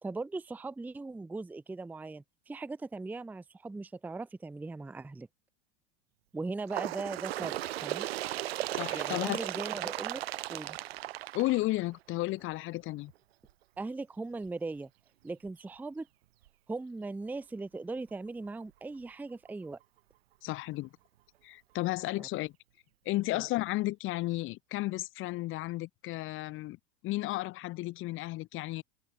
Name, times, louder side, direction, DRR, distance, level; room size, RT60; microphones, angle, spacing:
voice 1, 0.0-5.3 6.3-8.1 8.9-10.2 10.5-10.8 13.8-14.9 15.2-16.1 16.7-19.8 22.2-22.3 23.3-23.5, right 3 dB, 5° right, 0.6 m, -39 dB
Bird, 6.7-12.1 13.0-13.1 13.5-13.6 14.5-14.6 15.5-15.6 16.5-16.6, right 15 dB, 90° right, 0.5 m, -36 dB
voice 2, 8.7-9.4 11.3-13.1 20.4-20.9 21.4-22.5 23.1-26.8 27.0-28.8, left 18 dB, 40° left, 0.8 m, -33 dB
hypercardioid pair, 100°, 30 cm